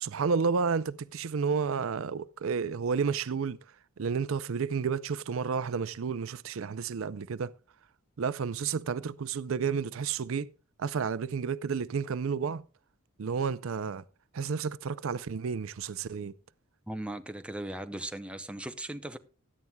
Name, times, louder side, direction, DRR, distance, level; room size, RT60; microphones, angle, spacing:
voice 1, 0.0-3.6 4.0-7.5 8.2-10.5 10.8-12.6 13.2-14.0 14.3-16.3, right 5 dB, 65° right, 0.5 m, -31 dB
voice 2, 16.9-19.2, right 1 dB, 5° right, 0.6 m, -38 dB
16.5 x 11.0 x 2.3 m
head